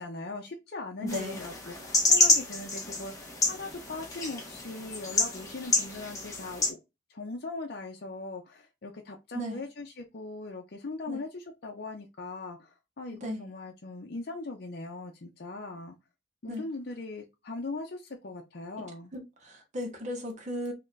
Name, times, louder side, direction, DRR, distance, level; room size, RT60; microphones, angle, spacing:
voice 1, 0.0-6.8 7.1-16.0 16.4-19.1, left 2 dB, 60° left, 0.6 m, -40 dB
voice 2, 1.0-1.4 9.3-9.6 11.1-11.2 13.1-13.4 16.5-16.6 19.1-20.7, left 1 dB, 40° right, 1.1 m, -36 dB
sound 1, 1.1-6.7, left 2 dB, 20° left, 1.2 m, -28 dB
4.2 x 3.0 x 2.6 m
head